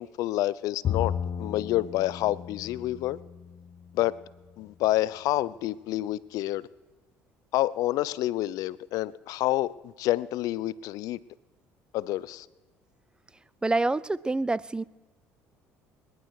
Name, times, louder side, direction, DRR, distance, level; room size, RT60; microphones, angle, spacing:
voice 1, 0.0-3.2 3.9-4.1 4.6-6.7 7.5-11.2 11.9-12.5, left 15 dB, 70° left, 20 dB, 0.5 m, -28 dB
Bowed string instrument, 0.8-4.2, left 9 dB, 55° left, 1.0 m, -34 dB
voice 2, 13.6-14.8, right 2 dB, 15° right, 20 dB, 0.5 m, -26 dB
23.5 x 11.0 x 4.8 m, 1.2 s
supercardioid pair, 75°, 6 cm